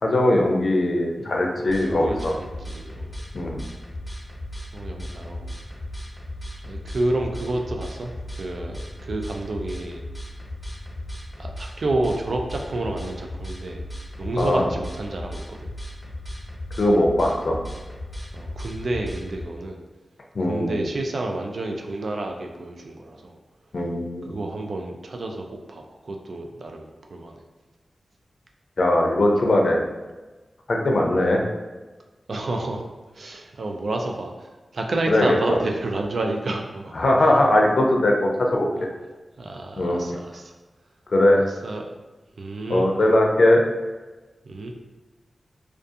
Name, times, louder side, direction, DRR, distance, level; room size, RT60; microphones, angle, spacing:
voice 1, 0.0-2.3 3.3-3.6 14.4-14.6 16.8-17.6 20.3-20.8 23.7-24.3 28.8-29.8 30.7-31.4 35.1-35.4 36.9-38.7 39.8-40.0 41.1-41.4 42.7-43.6, left 1 dB, 70° left, 0 dB, 0.4 m, -20 dB
voice 2, 1.6-3.1 4.7-5.5 6.6-10.0 11.4-13.9 14.2-15.7 18.3-19.8 20.5-23.4 24.2-27.4 31.1-31.2 32.3-32.8 33.1-36.9 37.2-37.3 38.8-38.9 39.4-40.5 41.6-41.9 42.4-42.9 44.4-44.7, right 2 dB, 75° right, 2 dB, 0.3 m, -30 dB
sound 1, 1.7-19.5, left 1 dB, 10° left, 1.1 m, -36 dB
2.4 x 2.3 x 2.6 m, 1.2 s
cardioid pair, 45°, 0 cm